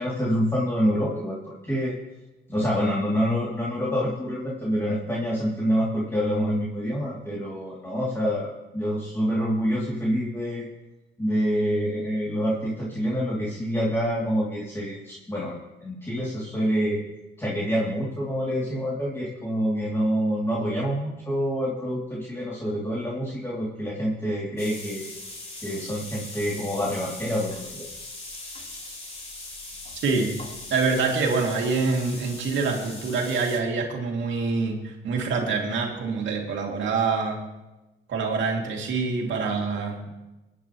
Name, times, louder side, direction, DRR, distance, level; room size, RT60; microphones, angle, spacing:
voice 1, 0.0-2.0 2.5-10.7 11.2-17.0 17.4-25.0 25.6-27.9, equal, 10° left, -6 dB, 2.7 m, -27 dB
sound 1, 24.6-33.6, left 2 dB, 30° left, 3.5 m, -40 dB
voice 2, 30.7-37.4 38.1-40.1, right 4 dB, 70° right, 1 dB, 2.5 m, -26 dB
21.0 x 10.0 x 3.1 m, 1.1 s
cardioid pair, 90°, 20 cm